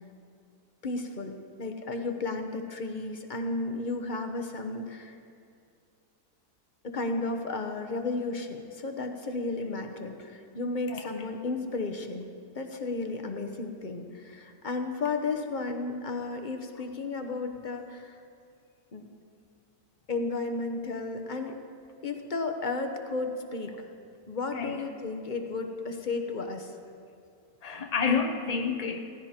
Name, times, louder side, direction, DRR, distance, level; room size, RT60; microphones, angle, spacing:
voice 1, 0.8-5.1 6.8-18.2 18.9-19.1 20.1-21.6 22.0-23.9 24.3-26.7, left 3 dB, 35° left, 5 dB, 0.9 m, -33 dB
voice 2, 27.6-29.0, left 5 dB, 55° left, 4 dB, 0.4 m, -29 dB
17.0 x 15.5 x 4.4 m, 2.4 s
omnidirectional pair, 1.9 m